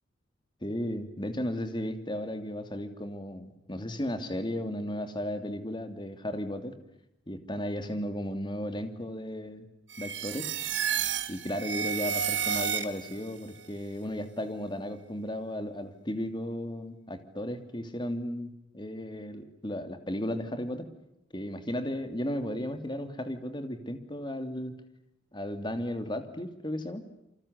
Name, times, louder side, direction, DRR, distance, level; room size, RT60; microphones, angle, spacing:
voice 1, 0.6-6.7 7.3-9.7 10.0-10.5 11.3-20.9 21.3-24.7 25.3-27.0, left 1 dB, 25° left, 8 dB, 2.9 m, -35 dB
sound 1, 9.9-13.3, right 8 dB, 70° right, 1.9 m, -31 dB
28.5 x 25.0 x 8.3 m, 0.83 s
head